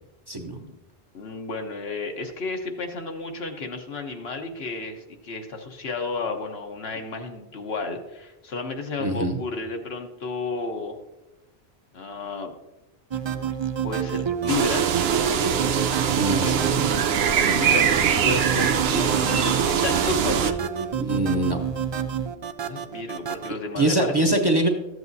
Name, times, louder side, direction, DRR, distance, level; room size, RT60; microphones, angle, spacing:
voice 1, 0.3-0.6 9.0-9.4 16.1-16.8 21.0-21.6 23.8-24.7, right 1 dB, 25° right, 3 dB, 0.8 m, -23 dB
voice 2, 1.1-11.0 11.9-12.5 13.8-14.9 16.3-16.5 17.3-20.6 22.6-24.3, left 3 dB, 75° left, 4 dB, 1.2 m, -32 dB
sound 1, 13.1-23.5, right 7 dB, 50° right, 0.3 m, -28 dB
sound 2, 14.5-20.5, right 8 dB, 75° right, 0.8 m, -23 dB
13.5 x 7.9 x 2.7 m, 0.99 s
omnidirectional pair, 1.1 m